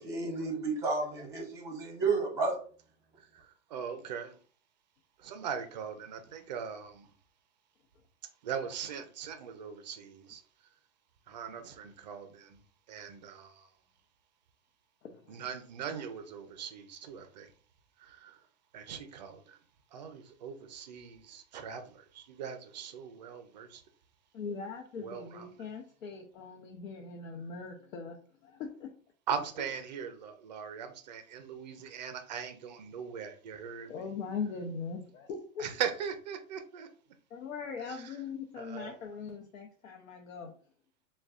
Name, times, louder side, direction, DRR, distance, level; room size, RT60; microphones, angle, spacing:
voice 1, 0.0-2.6, right 4 dB, 5° right, 0.7 m, -31 dB
voice 2, 3.2-4.4 5.2-7.1 8.4-10.4 11.3-13.7 15.3-17.5 18.0-18.4 18.7-19.6 19.9-23.8 25.0-25.6 29.3-34.0 35.6-36.9 37.9-38.1 38.6-38.9, right 7 dB, 35° right, 0.4 m, -40 dB
voice 3, 15.0-15.4 24.3-28.2 28.4-28.9 33.9-35.7 37.3-40.5, left 5 dB, 75° left, 0.8 m, -40 dB
6.3 x 2.2 x 2.4 m
hypercardioid pair, 160°, 40 cm